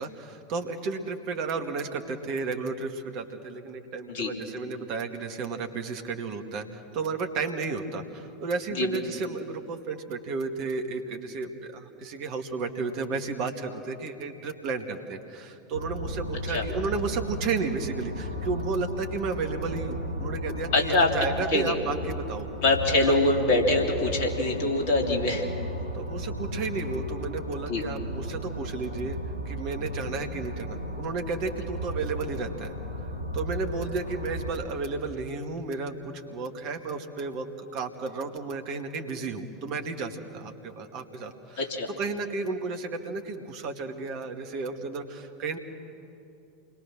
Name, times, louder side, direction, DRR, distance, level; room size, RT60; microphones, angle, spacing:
voice 1, 0.0-22.5 23.0-23.1 25.9-29.2 29.5-32.8 33.3-45.6, right 4 dB, 45° right, 5 dB, 2.0 m, -33 dB
sound 1, 15.7-34.5, equal, 85° left, 3.7 m, -35 dB
voice 2, 20.7-21.1 21.5-21.8 22.6-25.4 27.7-27.8 41.6-41.9, left 2 dB, 55° left, 1 dB, 3.4 m, -24 dB
28.0 x 21.5 x 6.3 m, 2.7 s
figure-of-eight pair, 80°, 0 cm